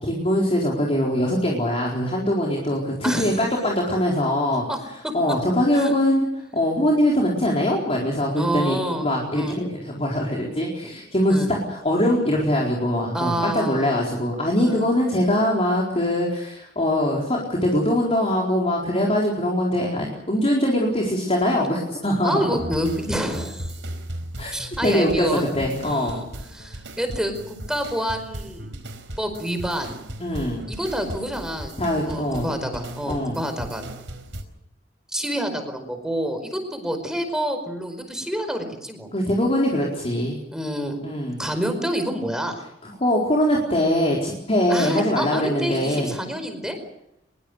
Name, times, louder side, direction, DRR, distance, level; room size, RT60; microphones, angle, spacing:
voice 1, 0.0-4.6 5.1-6.3 6.5-22.4 24.4-24.5 24.8-26.2 30.2-30.7 31.8-32.5 33.1-33.4 39.1-40.4 41.0-41.4 42.8-46.1, left 1 dB, 35° left, -2 dB, 4.4 m, -22 dB
voice 2, 8.4-9.1 9.3-9.6 10.8-10.9 11.3-11.5 13.1-13.9 14.7-14.9 22.2-23.7 24.5-25.4 25.8-26.3 26.5-28.7 29.2-30.0 30.7-31.7 32.1-33.8 35.1-39.1 40.5-41.0 41.4-42.6 44.7-46.8, equal, 5° right, 6 dB, 4.8 m, -28 dB
sound 1, 22.5-34.4, right 1 dB, 85° right, 4.5 m, -37 dB
23.5 x 22.5 x 6.6 m, 0.79 s
head